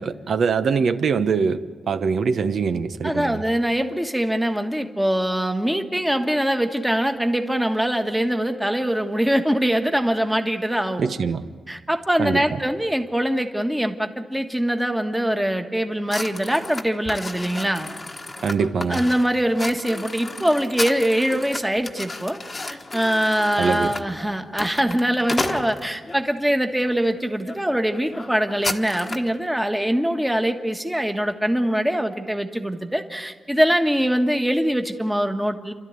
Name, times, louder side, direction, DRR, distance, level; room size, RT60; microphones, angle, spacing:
voice 1, 0.0-3.4 11.0-11.4 12.2-12.6 18.4-19.0 23.6-23.9, right 5 dB, 65° right, 10 dB, 1.1 m, -23 dB
voice 2, 3.0-11.1 11.7-17.9 18.9-22.4 22.7-35.7, equal, 5° right, 5 dB, 1.5 m, -23 dB
sound 1, 16.1-26.2 26.8-27.1 27.4-27.6 27.8-29.3, left 2 dB, 25° left, 1.3 m, -33 dB
29.0 x 12.5 x 9.6 m, 1.5 s
cardioid pair, 105°, 0 cm